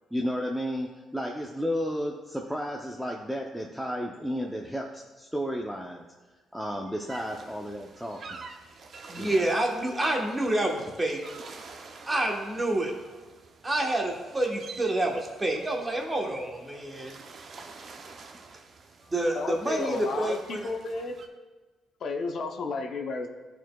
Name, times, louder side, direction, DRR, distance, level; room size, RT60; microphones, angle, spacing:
voice 1, 0.1-6.1 6.5-8.4 9.1-9.5, equal, ahead, -1 dB, 0.6 m, -33 dB
sound 1, 7.1-21.3, right 4 dB, 55° right, 0.7 m, -48 dB
voice 2, 9.1-11.2 12.1-12.9 13.6-17.2 19.1-20.6, right 1 dB, 20° right, 1 dB, 1.3 m, -28 dB
voice 3, 19.0-21.2 22.0-23.3, left 3 dB, 65° left, 4 dB, 0.7 m, -33 dB
11.0 x 4.6 x 2.3 m, 1.3 s
cardioid pair, 90°, 0 cm